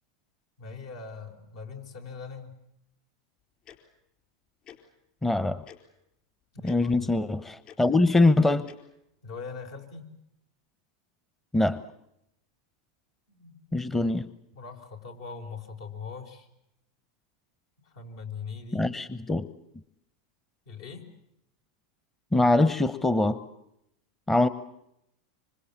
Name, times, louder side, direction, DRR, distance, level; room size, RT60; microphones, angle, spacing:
voice 1, 0.6-2.5 6.5-7.2 9.2-10.1 13.3-13.6 14.5-16.5 17.8-18.8 20.7-21.1, left 5 dB, 70° left, 3 dB, 4.8 m, -41 dB
Tick-tock, 3.6-3.8 4.6-4.8 5.7-5.8 6.6-6.8 7.6-7.8 8.7-8.8, left 10 dB, 40° left, 4.3 m, -48 dB
voice 2, 5.2-5.6 6.6-8.7 11.5-11.8 13.7-14.3 18.7-19.5 22.3-23.4 24.3-24.5, left 2 dB, 10° left, 15 dB, 0.9 m, -23 dB
26.0 x 25.5 x 7.2 m, 0.81 s
hypercardioid pair, 100°, 3 cm